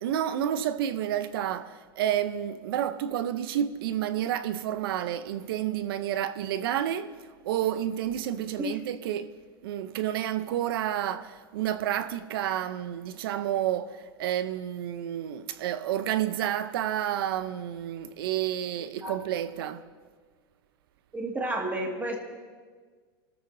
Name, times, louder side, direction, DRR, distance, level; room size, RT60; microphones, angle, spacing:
voice 1, 0.0-7.1 7.4-9.3 9.6-19.9, right 11 dB, 75° right, 0.8 m, -30 dB
voice 2, 21.1-22.2, right 1 dB, 15° right, 2.1 m, -31 dB
30.0 x 13.5 x 2.8 m
supercardioid pair, 145°, 13 cm